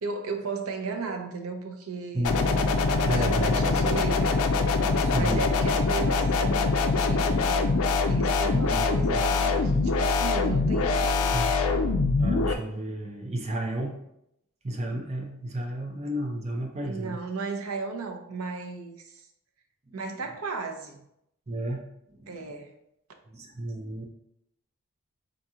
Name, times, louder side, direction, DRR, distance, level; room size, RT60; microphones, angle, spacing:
voice 1, 0.0-2.3 3.0-4.4 5.2-7.7 8.1-12.1 16.8-19.3 19.9-21.1 22.3-22.7, right 4 dB, 90° right, 4 dB, 0.6 m, -35 dB
sound 1, 2.2-12.5, left 3 dB, 75° left, 0.4 m, -24 dB
voice 2, 3.1-3.5 5.0-5.4 8.5-8.9 9.1-9.2 11.3-11.6 12.2-14.1 14.6-17.2 21.5-21.8 22.1-22.3 23.3-24.0, right 1 dB, 30° right, 1 dB, 0.6 m, -32 dB
3.8 x 2.9 x 3.6 m, 0.79 s
head